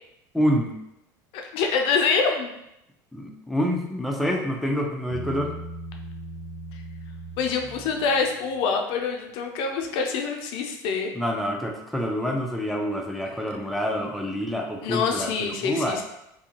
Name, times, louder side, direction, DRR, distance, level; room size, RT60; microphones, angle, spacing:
voice 1, 0.3-0.8 3.1-5.5 11.1-16.0, equal, ahead, 0 dB, 0.5 m, -27 dB
voice 2, 1.3-2.5 7.4-11.1 13.3-13.4 14.8-16.0, left 5 dB, 65° left, 3 dB, 0.4 m, -25 dB
Bass guitar, 5.1-8.5, right 1 dB, 70° right, 0.8 m, -39 dB
2.6 x 2.4 x 2.8 m, 0.82 s
supercardioid pair, 90°, 10 cm